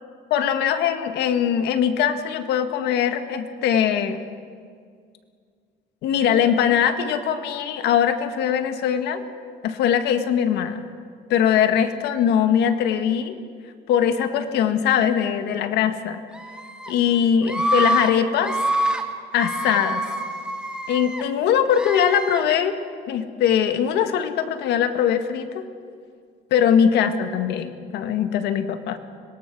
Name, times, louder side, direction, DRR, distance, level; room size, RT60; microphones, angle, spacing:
voice 1, 0.3-4.2 6.0-9.2 9.6-10.8 11.3-13.3 13.9-16.2 16.9-18.6 19.3-20.0 20.9-22.8 23.1-25.6 26.5-29.0, left 8 dB, 80° left, 8 dB, 1.8 m, -21 dB
Screaming, 16.3-16.9 17.4-18.1 18.4-19.0 19.3-21.2 21.7-22.4, right 1 dB, 5° right, 2.3 m, -26 dB
25.0 x 21.5 x 6.2 m, 2.1 s
cardioid pair, 110°, 17 cm